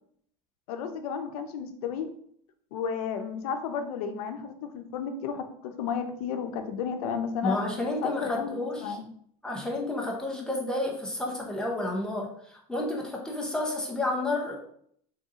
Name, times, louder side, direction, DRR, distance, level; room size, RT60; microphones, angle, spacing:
voice 1, 0.7-2.1 2.7-7.6 8.0-9.0, left 7 dB, 80° left, 7 dB, 0.7 m, -33 dB
voice 2, 7.4-9.0 9.4-14.6, left 2 dB, 5° left, -1 dB, 0.6 m, -31 dB
3.8 x 2.8 x 3.6 m, 0.66 s
supercardioid pair, 160°, 19 cm